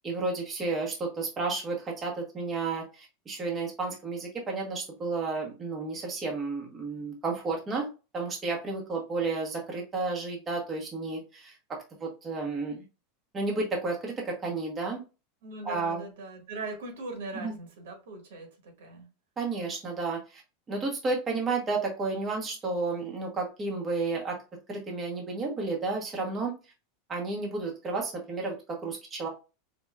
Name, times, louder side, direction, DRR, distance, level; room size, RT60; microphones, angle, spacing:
voice 1, 0.0-7.9 8.1-12.8 13.3-15.0 15.6-16.0 17.3-17.5 19.4-20.4 20.7-24.4 24.7-26.5 27.1-29.3, right 3 dB, 15° right, 0.9 m, -32 dB
voice 2, 15.4-19.1, right 3 dB, 85° right, 1.5 m, -40 dB
4.2 x 2.9 x 2.3 m
supercardioid pair, 165°, 0 cm